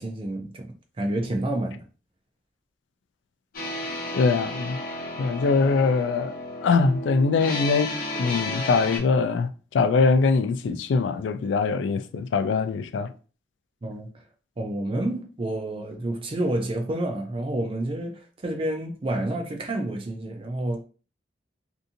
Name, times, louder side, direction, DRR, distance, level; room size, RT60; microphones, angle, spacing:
voice 1, 0.0-1.8 13.8-14.1 14.6-20.8, right 1 dB, 30° right, 0.4 m, -29 dB
sound 1, 3.5-9.0, left 2 dB, 55° left, 0.8 m, -33 dB
voice 2, 4.1-4.8 5.2-6.3 6.6-13.1, left 4 dB, 85° left, 0.3 m, -23 dB
2.7 x 2.5 x 2.6 m
head